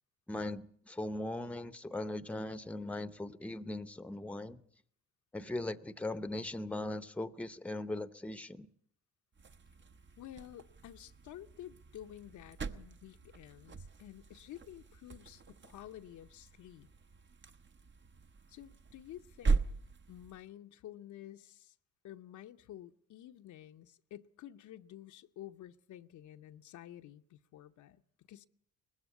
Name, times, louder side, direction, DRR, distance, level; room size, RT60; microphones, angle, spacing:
voice 1, 0.3-4.6 5.3-8.7, left 2 dB, 5° left, 0.8 m, -39 dB
sound 1, 9.3-20.5, right 4 dB, 40° right, 0.9 m, -40 dB
voice 2, 10.2-16.9 18.5-19.6 20.1-21.8 22.0-28.5, left 12 dB, 75° left, 0.8 m, -51 dB
20.0 x 15.5 x 8.5 m
cardioid pair, 90°, 30 cm